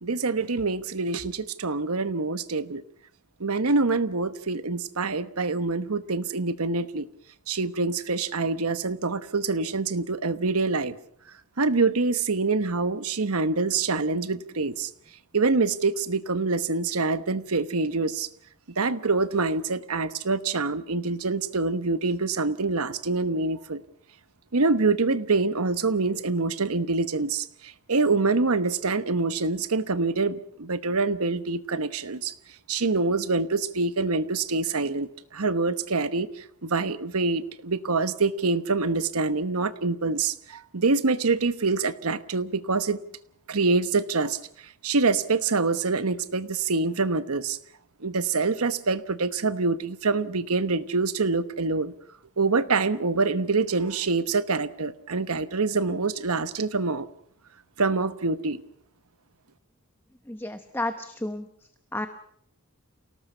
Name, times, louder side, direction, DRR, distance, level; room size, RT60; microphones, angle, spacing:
voice 1, 0.0-2.8 3.4-7.1 7.5-11.0 11.6-14.9 15.3-18.3 18.8-23.8 24.5-32.3 32.7-43.0 43.5-47.6 48.0-51.9 52.4-57.1 57.8-58.6, right 3 dB, 75° right, 12 dB, 1.1 m, -25 dB
voice 2, 60.3-61.5 61.9-62.1, left 1 dB, 10° left, 8 dB, 0.9 m, -31 dB
28.5 x 18.5 x 5.6 m, 0.65 s
head